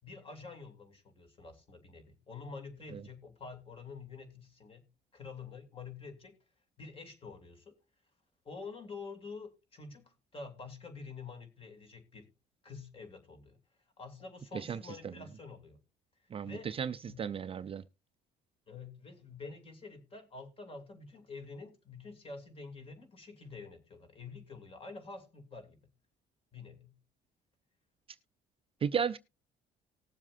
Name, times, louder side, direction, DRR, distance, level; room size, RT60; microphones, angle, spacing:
voice 1, 0.0-4.9 5.1-6.4 6.8-7.7 8.4-12.3 12.6-13.6 14.0-15.8 16.2-16.7 17.0-17.3 18.7-25.8 26.5-26.9, left 4 dB, 35° left, 2.8 m, -48 dB
voice 2, 14.5-15.1 16.3-17.8 28.8-29.2, right 7 dB, 35° right, 0.5 m, -35 dB
19.0 x 7.3 x 2.6 m
cardioid pair, 110°, 17 cm